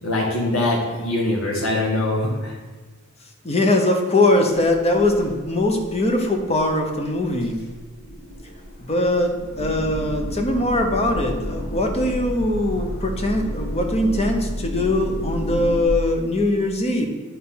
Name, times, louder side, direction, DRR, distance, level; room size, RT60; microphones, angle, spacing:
voice 1, 0.0-2.5, left 1 dB, 75° left, -6 dB, 2.0 m, -23 dB
voice 2, 3.4-7.6 8.8-17.1, left 1 dB, 30° left, 4 dB, 1.0 m, -21 dB
sound 1, 4.6-5.3 5.6-5.9 6.3-6.4 6.6-6.7 7.4-15.8, equal, 50° left, 1.8 m, -30 dB
9.3 x 4.3 x 5.7 m, 1.3 s
head